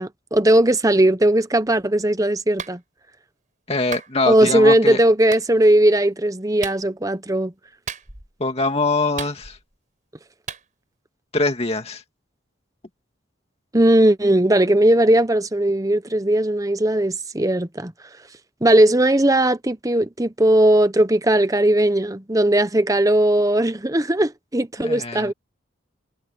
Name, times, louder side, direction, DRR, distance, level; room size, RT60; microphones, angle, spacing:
voice 1, 0.0-2.8 4.3-7.5 13.7-17.9 18.6-25.3, right 1 dB, 15° right, 0.9 m, -18 dB
Clapping, 2.6-2.8 3.9-4.1 5.3-5.5 6.6-6.8 7.9-8.3 9.2-9.7 10.5-10.6, right 6 dB, 40° right, 6.1 m, -34 dB
voice 2, 3.7-5.0 8.4-9.6 11.3-12.0 24.8-25.3, left 3 dB, 30° left, 2.2 m, -23 dB
head